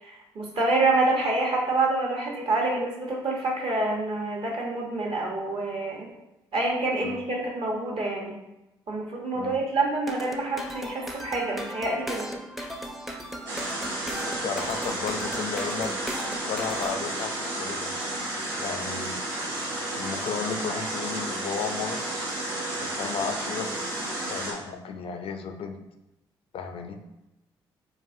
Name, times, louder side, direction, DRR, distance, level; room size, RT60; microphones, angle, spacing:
voice 1, 0.0-6.1 6.5-8.3 8.9-12.3, right 2 dB, 55° right, -1 dB, 1.0 m, -27 dB
sound 1, 10.0-16.9, equal, ahead, 0.4 m, -37 dB
sound 2, 13.5-24.5, right 1 dB, 85° right, 0.6 m, -32 dB
voice 2, 14.3-17.9 18.6-19.3 19.5-19.7 19.9-22.0 22.8-23.9 24.3-25.8 26.5-27.0, left 6 dB, 55° left, 6 dB, 0.4 m, -34 dB
3.8 x 2.4 x 2.6 m, 0.94 s
hypercardioid pair, 45°, 11 cm